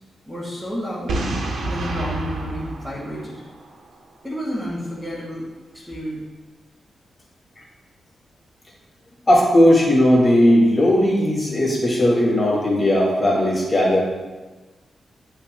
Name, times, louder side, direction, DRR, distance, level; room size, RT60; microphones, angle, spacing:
voice 1, 0.3-1.1 1.6-3.4 4.2-5.4 5.7-6.2, equal, 10° right, -6 dB, 1.6 m, -30 dB
Boom, 1.1-3.9, right 2 dB, 85° right, 0.9 m, -28 dB
voice 2, 9.3-14.0, left 1 dB, 20° left, -5 dB, 2.0 m, -17 dB
9.9 x 5.7 x 2.2 m, 1.2 s
wide cardioid pair, 130°, 0 cm